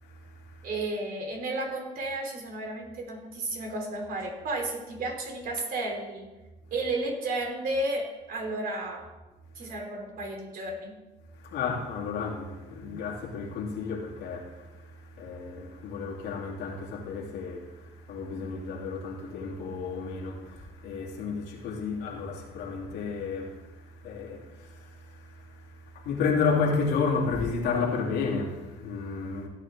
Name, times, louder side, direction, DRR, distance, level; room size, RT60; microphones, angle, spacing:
voice 1, 0.0-0.7 9.6-9.7 11.3-29.5, left 5 dB, 85° left, 2.8 m, -32 dB
voice 2, 0.6-6.3 6.7-9.1 9.6-11.0, right 2 dB, 60° right, 3.6 m, -33 dB
16.0 x 9.2 x 3.8 m
cardioid pair, 110°, 17 cm